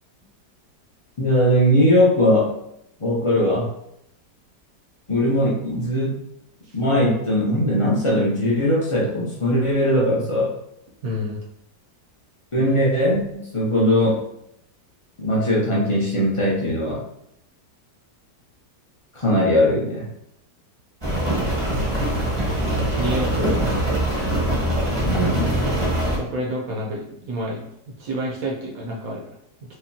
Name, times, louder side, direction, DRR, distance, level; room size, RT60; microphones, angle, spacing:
voice 1, 1.2-2.5 3.0-3.7 5.1-6.2 6.7-10.5 12.5-14.2 15.2-17.0 19.1-20.1 25.0-25.6, equal, 35° left, -5 dB, 0.5 m, -20 dB
voice 2, 11.0-11.4 23.0-23.6 26.1-27.6 28.0-29.2, right 1 dB, 65° right, -2 dB, 1.0 m, -28 dB
Rain, 21.0-26.2, right 1 dB, 20° right, 0.7 m, -23 dB
4.9 x 2.3 x 2.8 m, 0.76 s
omnidirectional pair, 1.9 m